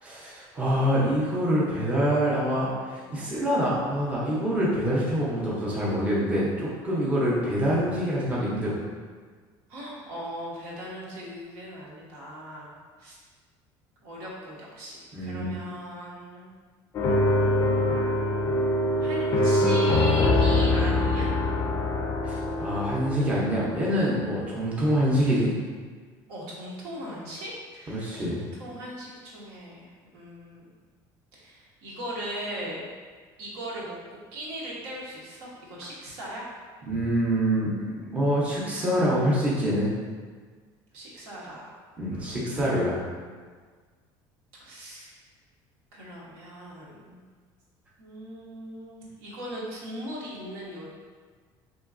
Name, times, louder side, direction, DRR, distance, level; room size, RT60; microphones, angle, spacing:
voice 1, 0.0-8.8 15.1-15.5 22.2-25.5 27.9-28.4 36.9-37.7 38.1-39.9 42.0-43.0, equal, 15° right, -7 dB, 0.6 m, -25 dB
voice 2, 9.7-13.2 14.0-16.5 19.0-21.4 26.3-30.7 31.3-32.8 33.4-34.0 34.3-36.5 40.9-41.7 42.1-42.3 44.6-45.1 45.9-47.2 48.0-50.9, equal, 85° right, -5 dB, 1.1 m, -38 dB
sound 1, 16.9-24.1, left 2 dB, 30° left, 0.4 m, -24 dB
3.7 x 3.0 x 2.4 m, 1.5 s
cardioid pair, 165°, 10 cm